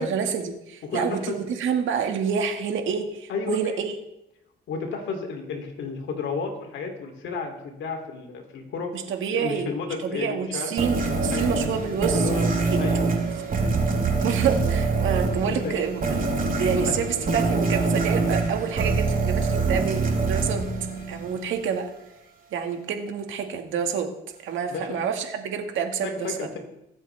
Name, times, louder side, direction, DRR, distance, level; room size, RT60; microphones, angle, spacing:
voice 1, 0.0-4.0 8.9-9.7 10.0-12.8 14.2-16.2 16.6-20.6 21.1-21.9 22.5-24.1 24.4-26.3, right 7 dB, 80° right, 5 dB, 1.8 m, -28 dB
voice 2, 0.8-1.4 3.3-3.8 4.7-8.9 9.3-10.7 11.3-11.5 12.1-12.4 12.8-13.0 15.2-15.8 16.9-17.0 21.1-21.2 24.7-25.0 26.0-26.6, left 4 dB, 75° left, 3 dB, 2.8 m, -32 dB
sound 1, 10.8-21.6, right 3 dB, 45° right, 4.7 m, -25 dB
23.0 x 8.0 x 3.4 m, 0.85 s
cardioid pair, 90°, 20 cm